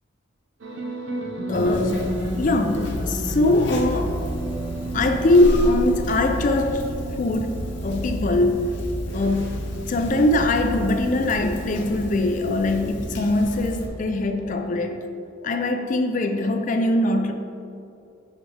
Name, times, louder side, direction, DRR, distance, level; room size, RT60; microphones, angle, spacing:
sound 1, 0.6-15.0, right 2 dB, 70° right, 0.7 m, -34 dB
Conversation, 1.5-13.9, left 1 dB, 60° left, 0.8 m, -32 dB
voice 1, 1.5-4.3 4.9-8.7 9.1-15.0 15.4-17.3, left 2 dB, 40° left, 6 dB, 0.4 m, -22 dB
6.0 x 5.2 x 3.3 m, 2.6 s
head